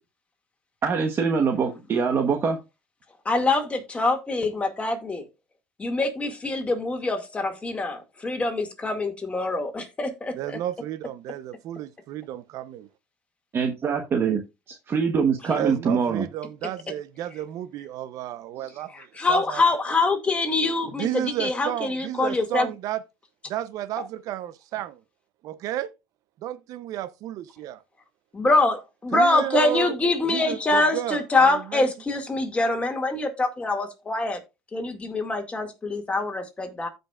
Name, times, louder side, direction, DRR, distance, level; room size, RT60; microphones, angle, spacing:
voice 1, 0.8-2.6 13.5-14.4 14.7-16.2, right 5 dB, 35° right, 1.1 m, -23 dB
voice 2, 3.3-5.2 5.8-10.6 18.9-22.7 28.3-34.4 34.7-36.9, left 2 dB, 20° left, 2.1 m, -24 dB
voice 3, 10.4-12.9 15.5-19.6 21.0-23.0 23.5-25.0 25.4-25.9 26.4-27.8 29.1-29.9 30.3-31.9, right 12 dB, 60° right, 0.7 m, -32 dB
15.0 x 5.3 x 2.4 m
cardioid pair, 125°, 7 cm